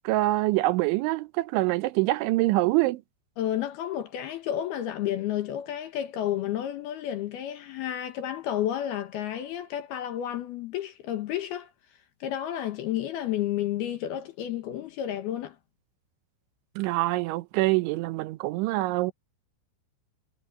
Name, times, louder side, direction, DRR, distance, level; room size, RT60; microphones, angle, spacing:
voice 1, 0.0-3.0 16.8-19.1, right 19 dB, 80° right, 3.1 m, -25 dB
voice 2, 3.4-11.7 12.2-15.6, left 11 dB, 70° left, 2.8 m, -31 dB
omnidirectional pair, 5.4 m